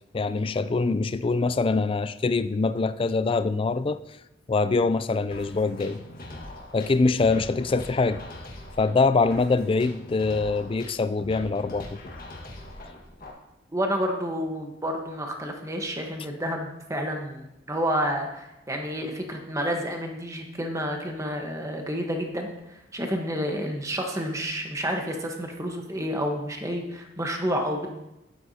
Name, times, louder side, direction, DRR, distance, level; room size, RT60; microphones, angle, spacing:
voice 1, 0.1-4.0 4.5-6.0 6.7-8.2 8.8-12.0, left 3 dB, 30° left, 13 dB, 0.3 m, -24 dB
sound 1, 5.3-13.3, left 1 dB, 50° left, 1.6 m, -42 dB
voice 2, 13.7-27.9, equal, 15° right, 2 dB, 1.2 m, -30 dB
12.5 x 9.4 x 2.8 m, 0.92 s
head